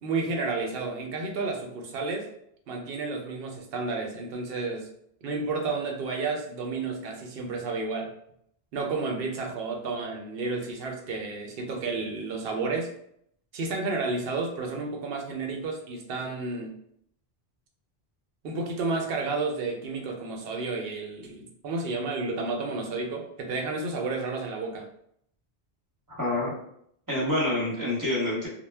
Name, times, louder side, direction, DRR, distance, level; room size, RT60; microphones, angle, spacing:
voice 1, 0.0-2.3 2.7-4.9 5.2-8.1 8.7-12.9 13.5-16.7 18.4-24.9, right 3 dB, 70° right, 2 dB, 0.8 m, -31 dB
voice 2, 26.1-26.5 27.1-28.5, left 1 dB, 20° right, -6 dB, 0.9 m, -27 dB
2.2 x 2.1 x 3.2 m, 0.70 s
omnidirectional pair, 1.0 m